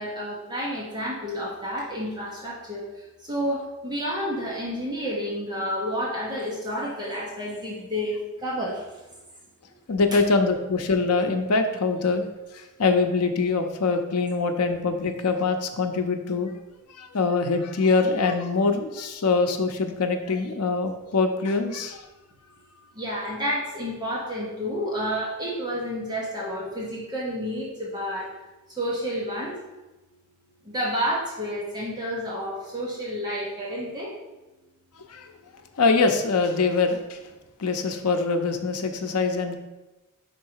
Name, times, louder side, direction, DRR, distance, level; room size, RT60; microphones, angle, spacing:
voice 1, 0.0-8.8 22.9-28.3 28.7-29.5 30.6-34.1, equal, 20° right, -5 dB, 1.1 m, -30 dB
voice 2, 9.9-12.2 12.5-16.5 17.0-22.0 35.1-35.3 35.8-37.2 37.6-39.5, left 4 dB, 90° left, 6 dB, 0.7 m, -24 dB
5.4 x 3.8 x 4.7 m, 1.1 s
head